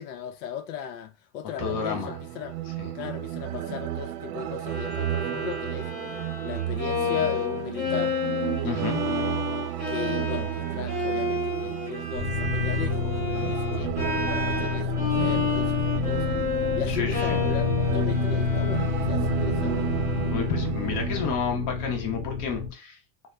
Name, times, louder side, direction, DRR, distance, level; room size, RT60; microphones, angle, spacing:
voice 1, 0.0-2.6 2.9-6.1 6.4-8.2 8.6-9.5 9.9-14.1 14.5-16.4 16.8-19.8, left 8 dB, 85° left, 0.6 m, -37 dB
voice 2, 1.6-2.2 2.8-2.9 8.6-9.0 16.9-17.4 20.3-23.0, left 6 dB, 45° left, 0.9 m, -31 dB
sound 1, 1.6-21.3, right 13 dB, 80° right, 0.6 m, -32 dB
Bowed string instrument, 4.7-20.7, left 4 dB, 20° left, 0.9 m, -31 dB
sound 2, 12.1-22.7, left 5 dB, ahead, 0.5 m, -29 dB
2.9 x 2.0 x 2.2 m
supercardioid pair, 130°, 47 cm